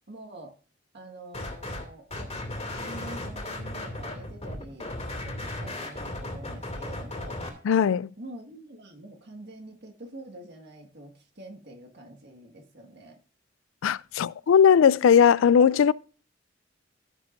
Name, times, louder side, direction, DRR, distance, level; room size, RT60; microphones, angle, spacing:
voice 1, 0.1-0.6 0.9-2.3 2.8-7.4 8.2-13.2 15.6-15.8, right 1 dB, 60° right, 1.7 m, -45 dB
sound 1, 1.3-1.8 2.1-7.5, left 1 dB, 35° left, 2.4 m, -35 dB
voice 2, 7.6-8.1 13.8-15.9, left 7 dB, 85° left, 0.3 m, -19 dB
15.5 x 7.1 x 2.6 m
head